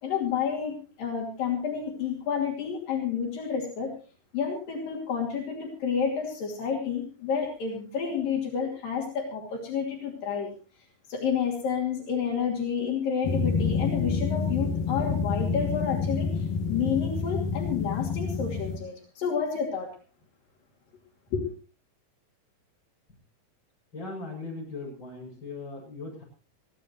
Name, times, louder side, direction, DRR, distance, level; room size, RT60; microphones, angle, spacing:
voice 1, 0.0-3.9 4.3-10.5 11.1-19.9 21.3-21.5, left 7 dB, 80° left, 0 dB, 4.4 m, -30 dB
sound 1, 13.2-18.8, left 5 dB, 55° left, 2.3 m, -28 dB
voice 2, 23.9-26.2, left 3 dB, 35° left, -1 dB, 7.8 m, -39 dB
23.0 x 15.5 x 3.1 m, 0.36 s
omnidirectional pair, 3.9 m